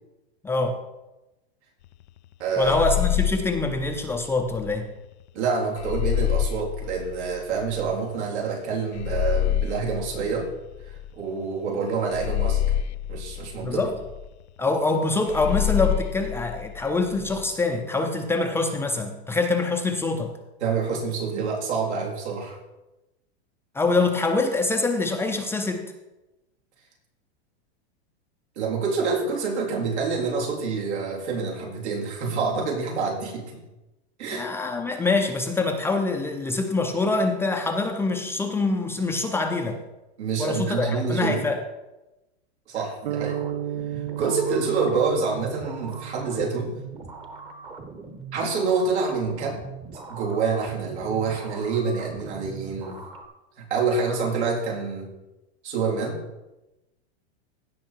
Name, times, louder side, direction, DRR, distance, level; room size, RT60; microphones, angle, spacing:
voice 1, 0.4-0.8 2.6-4.9 13.6-13.9 14.6-20.3 23.7-25.9 34.3-39.8 40.4-41.6, left 3 dB, 5° left, 3 dB, 0.5 m, -25 dB
voice 2, 2.4-2.8 5.3-10.5 11.1-12.6 13.1-13.8 20.6-22.6 28.6-33.6 34.2-34.5 40.2-41.4 42.7-43.4 43.9-46.7 48.3-49.6 50.1-53.0 53.6-55.1 55.6-56.2, right 5 dB, 85° right, -2 dB, 3.8 m, -27 dB
sound 1, 2.6-4.8 5.8-7.9 8.9-11.3 12.1-14.3 15.3-17.4, left 11 dB, 85° left, 0.5 m, -27 dB
sound 2, 43.1-47.3, right 10 dB, 65° right, 0.7 m, -34 dB
sound 3, 43.3-53.3, right 4 dB, 15° right, 1.0 m, -41 dB
16.0 x 5.7 x 4.5 m, 1.0 s
supercardioid pair, 150°, 33 cm